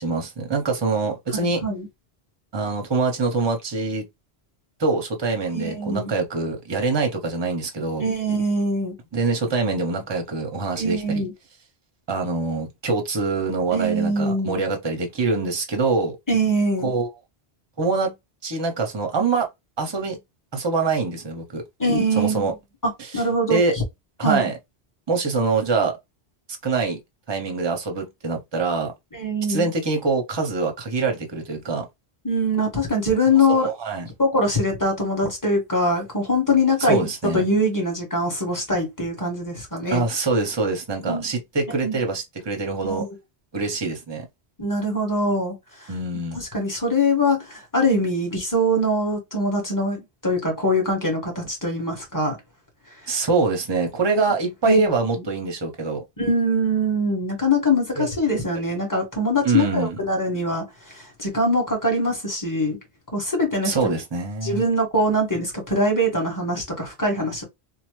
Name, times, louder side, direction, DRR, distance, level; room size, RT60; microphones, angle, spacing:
voice 1, 0.0-1.6 2.5-4.0 4.8-8.1 9.1-11.2 12.1-16.2 16.8-17.1 17.8-18.1 18.4-19.5 19.8-20.2 20.5-21.6 22.2-22.5 23.1-23.2 23.5-23.8 24.2-24.6 25.1-25.9 26.6-27.0 27.3-28.9 29.5-31.9 33.5-34.1 36.9-37.4 39.9-43.1 43.5-44.3 45.9-46.4 53.1-56.0 58.0-58.1 59.4-60.0 63.6-64.6, right 3 dB, 30° right, 0.7 m, -24 dB
voice 2, 1.3-1.9 5.5-6.1 8.0-8.9 10.8-11.3 13.7-14.6 16.3-16.9 21.8-22.5 22.8-23.8 24.2-24.5 29.1-29.7 32.2-33.7 34.2-40.0 41.1-41.3 41.8-42.0 42.8-43.1 44.6-45.9 46.3-52.4 54.6-54.9 55.2-55.3 56.2-62.8 63.1-63.9 64.4-67.4, equal, 20° left, 1.2 m, -23 dB
3.2 x 2.1 x 3.0 m
omnidirectional pair, 1.1 m